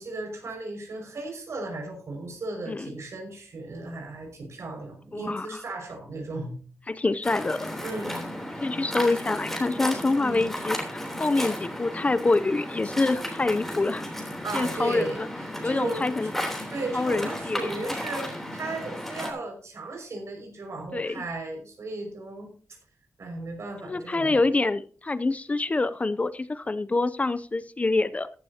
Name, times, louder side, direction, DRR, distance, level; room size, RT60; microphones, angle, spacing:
voice 1, 0.0-6.6 7.8-8.4 10.2-10.5 14.4-16.1 16.7-22.5 23.2-24.4, right 2 dB, 60° right, 3 dB, 5.6 m, -35 dB
voice 2, 5.1-5.6 6.9-7.7 8.6-14.0 14.5-15.1 15.6-16.3 16.9-17.7 20.9-21.2 23.9-28.3, left 3 dB, 25° left, 14 dB, 0.5 m, -26 dB
Waves surf, 7.2-19.3, equal, 5° left, 3.3 m, -34 dB
15.0 x 12.0 x 2.8 m, 0.41 s
wide cardioid pair, 135°, 6 cm